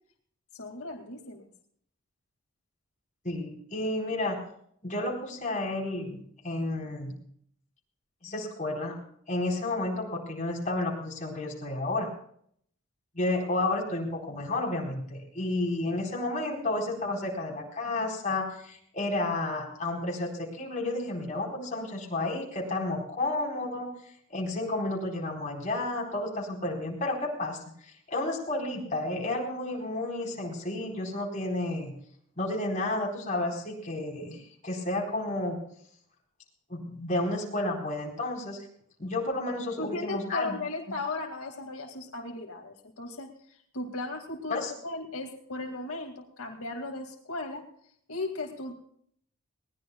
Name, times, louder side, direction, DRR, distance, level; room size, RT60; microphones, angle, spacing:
voice 1, 0.5-1.5 39.8-47.7 48.1-48.7, left 2 dB, 85° left, 2 dB, 2.2 m, -36 dB
voice 2, 3.2-4.4 4.8-7.2 8.2-8.9 9.3-12.1 13.1-23.9 24.3-31.9 32.4-35.6 36.7-38.7 39.0-40.6 44.5-44.7, left 2 dB, 35° left, -2 dB, 4.3 m, -31 dB
21.0 x 18.5 x 2.3 m, 0.64 s
head